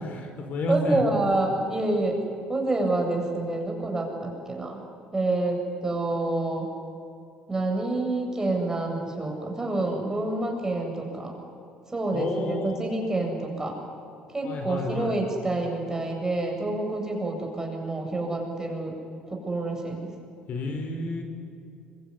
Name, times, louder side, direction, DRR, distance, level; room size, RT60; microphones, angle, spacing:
voice 1, 0.1-1.0 12.1-12.8 14.4-15.1 20.5-21.2, left 2 dB, 55° left, 5 dB, 5.2 m, -30 dB
voice 2, 0.7-2.2 2.5-4.8 5.1-6.7 7.5-11.3 11.9-13.8 14.3-18.9 19.3-20.1, right 2 dB, 15° right, 2 dB, 7.9 m, -28 dB
25.0 x 24.0 x 9.9 m, 2.6 s
cardioid pair, 95°, 3 cm